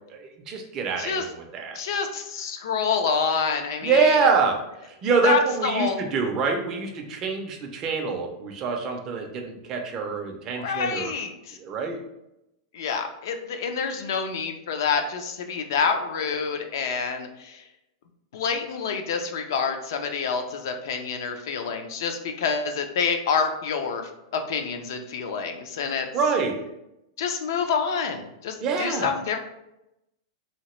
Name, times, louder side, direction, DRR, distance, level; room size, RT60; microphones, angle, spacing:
voice 1, 0.1-1.8 3.8-4.6 5.0-11.1 11.6-12.0 26.1-26.6 28.6-29.1, right 5 dB, 20° right, 2 dB, 0.4 m, -25 dB
voice 2, 1.0-1.3 1.7-4.3 5.2-6.0 10.5-11.6 12.7-17.6 18.3-26.1 27.2-29.4, left 5 dB, 55° left, 6 dB, 0.4 m, -27 dB
2.8 x 2.8 x 3.0 m, 0.88 s
supercardioid pair, 175°, 2 cm